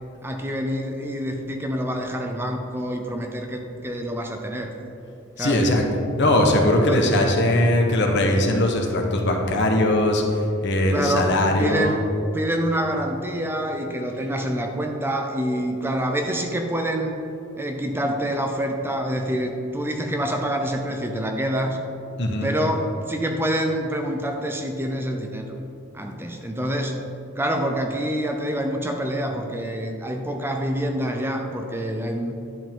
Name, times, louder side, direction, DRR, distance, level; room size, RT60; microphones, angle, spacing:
voice 1, 0.2-4.7 5.4-5.7 6.9-7.1 10.9-12.1 12.3-17.2 17.6-21.8 22.4-25.4 25.9-27.1 27.4-32.3, equal, 10° right, 3 dB, 0.5 m, -26 dB
voice 2, 5.4-10.2 10.6-12.0 22.2-22.5, left 1 dB, 55° left, 2 dB, 1.0 m, -20 dB
11.0 x 5.1 x 3.7 m, 2.8 s
head